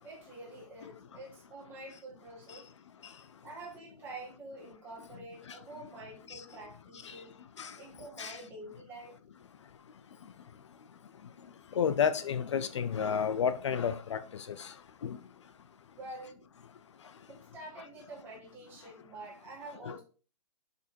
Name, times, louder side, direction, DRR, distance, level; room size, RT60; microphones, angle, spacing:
voice 1, 0.0-2.7 3.4-7.3 7.7-9.2 15.9-16.5 17.3-20.0, right 2 dB, 10° right, 2.0 m, -47 dB
voice 2, 11.8-14.7 15.0-15.2 19.9-20.0, left 7 dB, 50° left, 0.6 m, -31 dB
6.5 x 5.2 x 4.3 m
hypercardioid pair, 170°, 20 cm